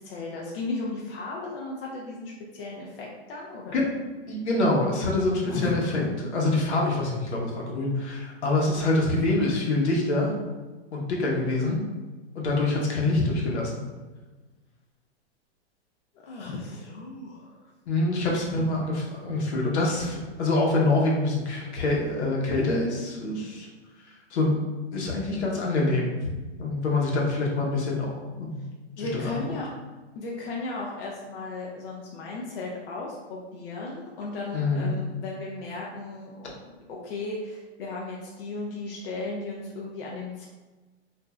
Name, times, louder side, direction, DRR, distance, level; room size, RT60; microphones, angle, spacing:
voice 1, 0.0-3.8 5.5-6.1 16.2-17.5 18.0-18.2 29.0-29.7 30.2-36.5 36.9-40.5, left 2 dB, 55° left, -3 dB, 0.5 m, -35 dB
voice 2, 4.3-6.0 6.3-10.3 10.9-11.8 12.3-13.8 17.9-23.7 24.3-24.6 24.9-26.2 26.6-28.6 29.0-29.4 34.5-34.9, left 2 dB, 80° left, -2 dB, 0.9 m, -25 dB
3.0 x 2.5 x 2.3 m, 1.2 s
hypercardioid pair, 165°, 33 cm